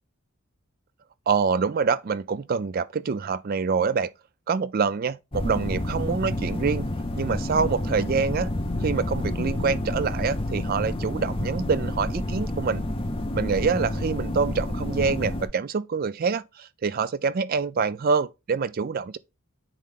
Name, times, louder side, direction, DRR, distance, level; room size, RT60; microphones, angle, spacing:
voice 1, 1.3-4.1 4.5-6.9 7.2-8.5 8.8-12.8 13.3-19.2, right 5 dB, 40° right, 0.3 m, -26 dB
sound 1, 5.3-15.5, left 1 dB, 25° left, 0.7 m, -29 dB
8.9 x 3.2 x 3.8 m
head